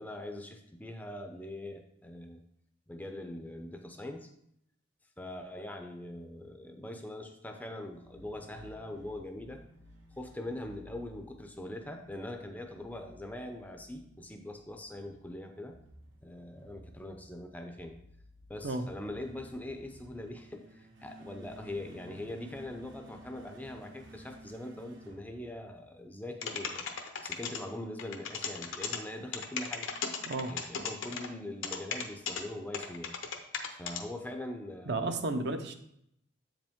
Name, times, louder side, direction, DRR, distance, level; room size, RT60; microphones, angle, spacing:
voice 1, 0.0-2.4 2.9-4.3 5.2-9.6 10.1-15.8 16.2-18.0 18.5-29.9 30.5-33.1 33.7-35.2, left 1 dB, 10° left, 5 dB, 0.5 m, -42 dB
sound 1, 7.9-26.1, equal, 70° right, 1.1 m, -55 dB
sound 2, 26.4-27.6 28.0-29.0 29.3-31.3 31.6-32.4 32.7-34.0, left 6 dB, 80° left, 0.8 m, -36 dB
voice 2, 34.9-35.7, right 2 dB, 55° right, 7 dB, 0.6 m, -32 dB
7.9 x 5.1 x 3.5 m, 0.74 s
head